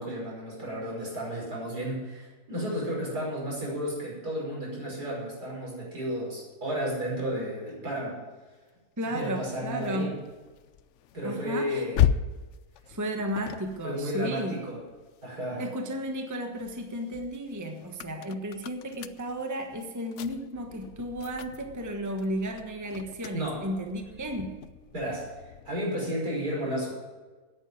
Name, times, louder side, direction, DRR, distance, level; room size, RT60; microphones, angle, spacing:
voice 1, 0.0-8.2 9.1-10.1 11.1-12.0 13.8-14.8 15.2-15.6 23.3-23.6 24.9-25.3 25.7-26.9, equal, 75° right, -4 dB, 6.2 m, -32 dB
voice 2, 9.0-10.1 11.2-11.8 12.9-14.6 15.6-24.6, equal, 10° right, 4 dB, 1.2 m, -33 dB
sound 1, 9.1-15.6 16.1-25.9, left 10 dB, 65° left, 0.8 m, -36 dB
9.8 x 9.3 x 9.2 m, 1.3 s
omnidirectional pair, 1.7 m